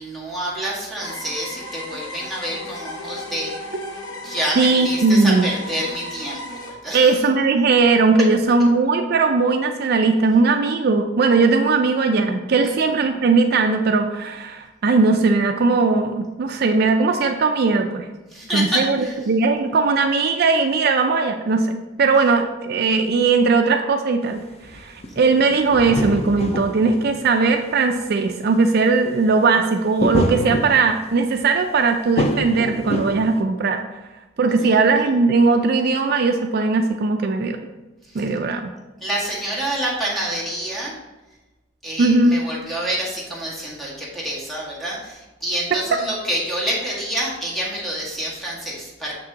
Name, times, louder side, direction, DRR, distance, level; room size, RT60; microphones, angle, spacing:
voice 1, 0.0-3.5 4.2-6.4 6.7-7.1 12.6-12.8 18.3-19.2 34.6-34.7 38.1-38.2 39.0-40.9 41.8-49.1, right 1 dB, ahead, -6 dB, 1.7 m, -27 dB
sound 1, 1.0-6.7, left 1 dB, 80° left, 1.1 m, -35 dB
voice 2, 4.6-5.4 6.9-18.1 18.5-24.4 24.7-33.8 34.4-37.6 38.1-38.6 42.0-42.4 45.7-45.8, right 4 dB, 55° right, 5 dB, 0.4 m, -18 dB
sound 2, 24.3-24.4 24.6-27.7 28.3-28.4 28.6-28.8 30.0-31.2 32.2-33.4, left 1 dB, 35° left, 0.5 m, -26 dB
6.8 x 6.0 x 2.8 m, 1.1 s
head